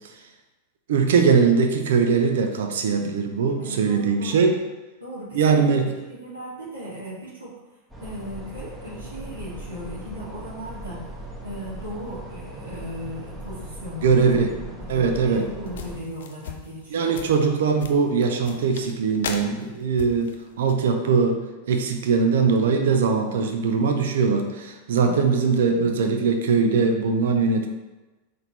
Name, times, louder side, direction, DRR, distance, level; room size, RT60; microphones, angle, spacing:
voice 1, 0.9-4.6 5.3-5.9 14.0-14.5 14.9-15.5 16.9-21.4 21.7-27.7, right 5 dB, 60° right, 5 dB, 0.5 m, -21 dB
voice 2, 3.4-4.5 5.0-5.8 6.1-7.5 8.0-11.0 11.4-17.1 25.0-25.3, equal, 85° right, -10 dB, 1.5 m, -37 dB
sound 1, 7.9-16.0, right 1 dB, 5° right, 1.1 m, -39 dB
sound 2, 15.3-20.7, left 6 dB, 65° left, 0.5 m, -38 dB
4.0 x 3.3 x 4.1 m, 1.1 s
figure-of-eight pair, 90°, 0 cm